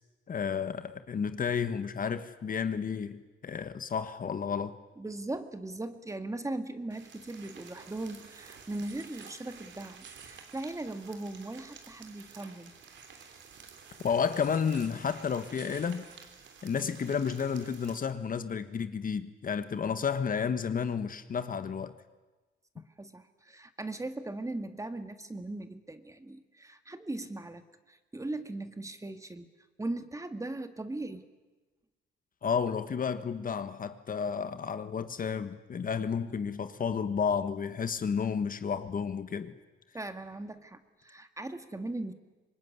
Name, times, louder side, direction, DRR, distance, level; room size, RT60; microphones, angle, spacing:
voice 1, 0.3-4.7 14.0-16.1 16.6-21.9 32.4-39.5, left 6 dB, 45° left, 1.5 m, -31 dB
voice 2, 5.0-12.7 16.8-16.9 23.0-27.6 27.9-29.5 29.8-31.3 39.9-42.1, right 2 dB, 15° right, 1.9 m, -39 dB
sound 1, 6.9-18.0, right 6 dB, 65° right, 3.4 m, -51 dB
25.0 x 20.5 x 9.7 m
cardioid pair, 90°, 20 cm